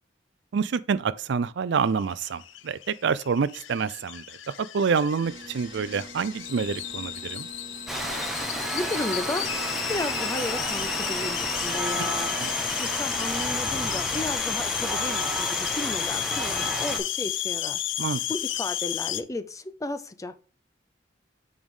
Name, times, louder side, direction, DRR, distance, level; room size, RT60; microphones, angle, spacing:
voice 1, 0.5-7.5 18.0-18.2, right 5 dB, 70° right, 0.4 m, -27 dB
sound 1, 1.9-19.2, left 12 dB, 75° left, 0.5 m, -32 dB
sound 2, 5.2-13.7, right 3 dB, 25° right, 1.0 m, -45 dB
Rain, 7.9-17.0, right 1 dB, ahead, 1.2 m, -31 dB
voice 2, 8.6-9.6 9.9-12.3 12.6-17.9 18.3-20.4, left 2 dB, 15° left, 0.5 m, -34 dB
7.1 x 4.8 x 3.7 m
head